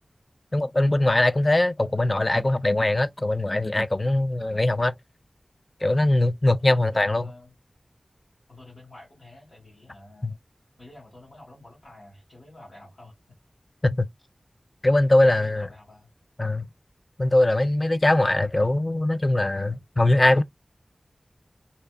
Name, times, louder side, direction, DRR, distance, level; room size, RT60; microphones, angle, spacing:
voice 1, 0.5-4.9 5.8-7.3 10.2-10.3 13.8-14.1 14.8-15.7 16.4-16.7 17.2-20.4, left 1 dB, 40° left, 0.3 m, -21 dB
voice 2, 6.6-7.6 8.5-10.4 10.8-13.2 15.3-16.1, left 2 dB, 75° left, 1.5 m, -49 dB
2.7 x 2.3 x 2.2 m
wide cardioid pair, 45°, 0 cm